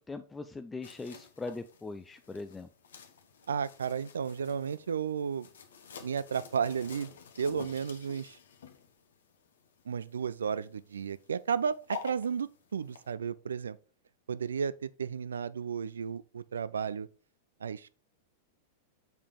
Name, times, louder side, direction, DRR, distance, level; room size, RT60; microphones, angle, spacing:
voice 1, 0.0-2.7, left 3 dB, 15° left, 0.4 m, -41 dB
sound 1, 0.8-13.1, left 6 dB, 75° left, 1.1 m, -50 dB
voice 2, 3.5-5.5 6.0-8.4 9.9-13.8 14.3-17.1 17.6-18.0, right 7 dB, 80° right, 0.4 m, -33 dB
6.8 x 5.4 x 3.5 m
hypercardioid pair, 95°, 0 cm